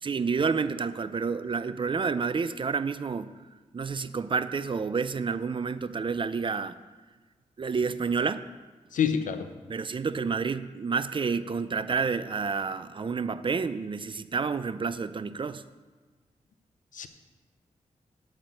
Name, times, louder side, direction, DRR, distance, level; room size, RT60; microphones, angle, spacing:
voice 1, 0.0-3.3 3.7-6.8 7.6-8.5 9.7-15.6, right 5 dB, 40° right, 13 dB, 0.5 m, -29 dB
voice 2, 8.9-9.5 16.9-17.1, left 8 dB, 80° left, 9 dB, 0.7 m, -27 dB
8.7 x 5.9 x 7.6 m, 1.4 s
cardioid pair, 70°, 13 cm